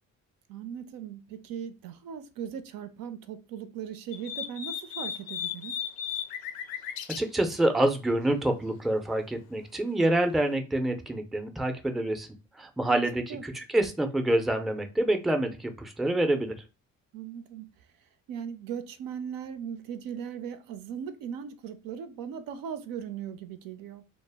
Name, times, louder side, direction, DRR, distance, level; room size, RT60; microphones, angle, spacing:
voice 1, 0.5-5.8 12.8-13.0 13.3-13.4 17.1-17.7 18.3-24.0, right 8 dB, 70° right, 0.5 m, -38 dB
sound 1, 4.1-7.2, left 8 dB, 80° left, 0.5 m, -35 dB
voice 2, 7.2-12.3 12.6-16.5, right 1 dB, ahead, 0.4 m, -27 dB
2.0 x 2.0 x 3.3 m
supercardioid pair, 70°, 35 cm